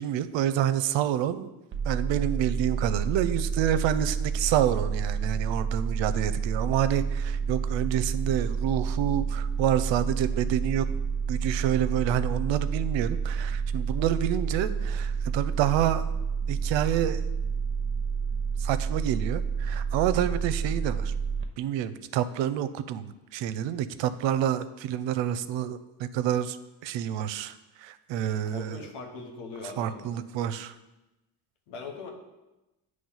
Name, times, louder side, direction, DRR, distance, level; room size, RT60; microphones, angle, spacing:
voice 1, 0.0-1.5 1.8-10.9 11.3-16.0 16.5-17.2 18.6-21.1 21.6-26.6 26.8-28.9 29.6-30.7, right 10 dB, 65° right, 13 dB, 0.6 m, -28 dB
sound 1, 1.7-21.4, right 6 dB, 25° right, 0.9 m, -29 dB
voice 2, 28.5-30.2 31.7-32.1, left 4 dB, 85° left, 2 dB, 1.2 m, -40 dB
8.7 x 3.2 x 5.5 m, 1.0 s
hypercardioid pair, 60°, 48 cm